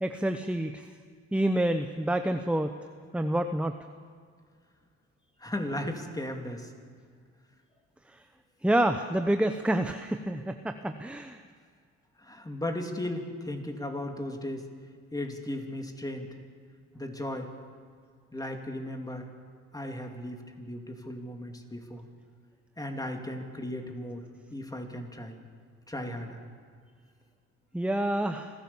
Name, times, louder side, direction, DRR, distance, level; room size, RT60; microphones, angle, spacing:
voice 1, 0.0-0.8 1.3-2.7 3.1-3.8 8.6-11.4 27.7-28.5, right 1 dB, 5° right, 8 dB, 0.9 m, -28 dB
voice 2, 5.4-6.7 12.2-14.7 15.1-16.3 16.9-17.5 18.3-19.3 19.7-22.0 22.8-24.2 24.5-25.4 25.9-26.4, left 1 dB, 10° left, 4 dB, 3.0 m, -36 dB
26.5 x 15.0 x 7.2 m, 2.1 s
cardioid pair, 90°, 30 cm